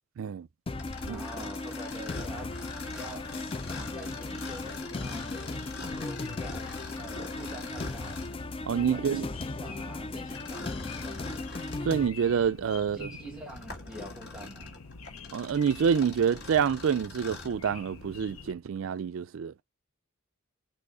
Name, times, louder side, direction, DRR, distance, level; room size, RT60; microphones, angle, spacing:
voice 1, 0.2-0.5 1.1-1.2 8.7-9.3 11.8-13.1 15.3-19.5, right 7 dB, 65° right, 0.4 m, -27 dB
sound 1, 0.7-12.1, left 2 dB, 25° left, 0.4 m, -37 dB
Mechanisms, 0.8-8.4 10.3-11.9 12.5-12.6 13.2-17.6, left 3 dB, 50° left, 2.0 m, -44 dB
voice 2, 1.0-2.5 2.9-3.3 3.8-6.7 7.0-8.2 8.9-11.6 12.9-14.8, right 1 dB, 5° right, 1.3 m, -46 dB
sound 2, 1.9-18.5, left 3 dB, 85° left, 1.0 m, -47 dB
6.2 x 3.0 x 5.4 m
head